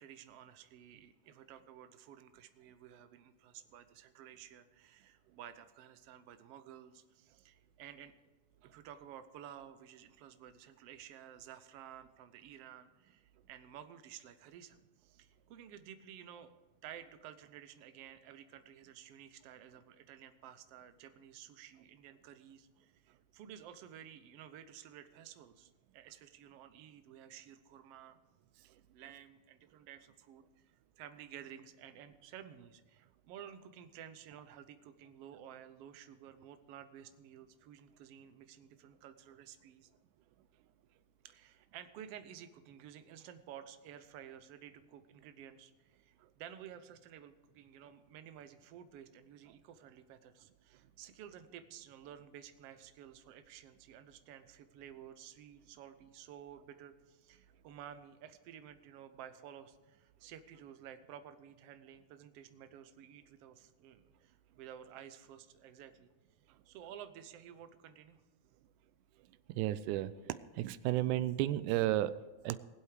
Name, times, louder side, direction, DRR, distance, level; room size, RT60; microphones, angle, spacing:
voice 1, 0.0-8.1 8.7-16.5 16.8-28.2 28.6-30.4 31.0-39.9 41.2-66.1 66.6-68.2, right 9 dB, 70° right, 10 dB, 1.5 m, -53 dB
voice 2, 69.5-70.1 70.6-72.6, right 14 dB, 90° right, 14 dB, 2.1 m, -32 dB
20.5 x 8.1 x 4.9 m, 1.3 s
omnidirectional pair, 3.5 m